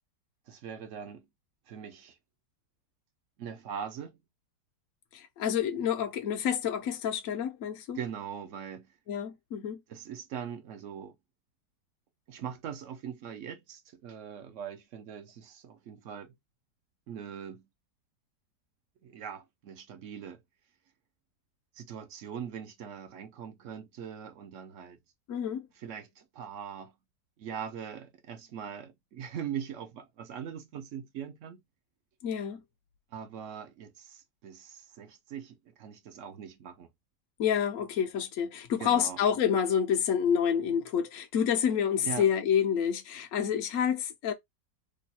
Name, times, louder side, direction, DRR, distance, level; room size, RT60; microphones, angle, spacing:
voice 1, 0.5-1.3 1.7-2.2 3.4-4.2 7.9-8.9 9.9-11.2 12.3-16.4 17.1-17.7 19.0-20.4 21.7-25.0 25.7-27.0 27.4-31.6 33.1-36.9 38.8-39.2 42.0-42.3, right 8 dB, 60° right, 0.8 m, -41 dB
voice 2, 5.1-8.0 9.1-9.8 25.3-25.7 32.2-32.6 37.4-44.3, left 8 dB, 65° left, 0.8 m, -28 dB
3.1 x 2.3 x 4.1 m
omnidirectional pair, 1.9 m